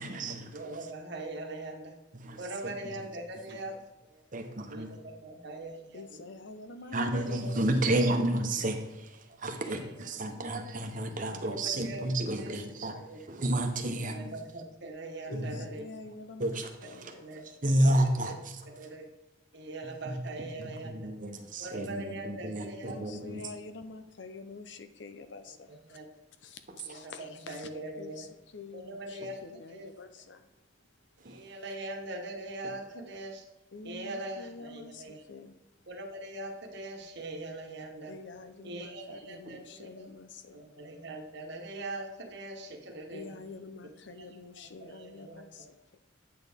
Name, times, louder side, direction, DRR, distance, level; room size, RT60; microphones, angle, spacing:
voice 1, 0.0-0.9 2.1-3.0 4.3-4.9 6.9-14.4 15.3-15.6 16.4-17.2 17.4-19.0 20.0-20.2 20.6-23.5 31.2-31.5 39.4-39.6, right 1 dB, 45° right, 5 dB, 0.9 m, -31 dB
voice 2, 0.5-2.0 2.4-3.7 4.1-4.2 4.7-6.2 7.3-7.5 9.7-9.8 10.0-10.8 11.4-12.1 12.3-12.5 12.9-13.2 14.0-15.8 17.0-17.4 17.8-17.9 18.2-18.4 18.8-19.1 19.5-21.1 21.6-23.4 25.7-26.0 26.9-28.3 28.7-29.4 29.7-29.9 31.2-33.4 33.8-35.2 35.9-38.1 38.6-40.1 40.5-43.4 44.8-45.5, right 2 dB, 65° right, 3 dB, 1.2 m, -42 dB
voice 3, 5.9-7.9 15.3-17.6 22.8-26.0 26.4-30.5 30.8-31.3 33.7-35.6 38.1-40.7 43.1-46.0, left 3 dB, 70° left, 9 dB, 0.7 m, -47 dB
8.7 x 6.1 x 3.6 m, 1.1 s
head